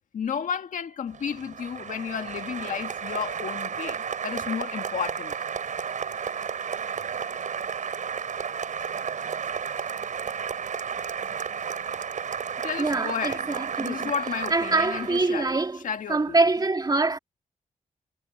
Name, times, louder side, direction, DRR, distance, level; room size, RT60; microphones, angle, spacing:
voice 1, 0.1-5.3 12.6-16.4, left 7 dB, 80° left, 1.7 m, -33 dB
Applause, 1.1-15.5, right 7 dB, 75° right, 6.5 m, -32 dB
voice 2, 12.8-14.1 14.5-15.8 16.1-17.2, right 3 dB, 30° right, 2.4 m, -24 dB
cardioid pair, 85°, 13 cm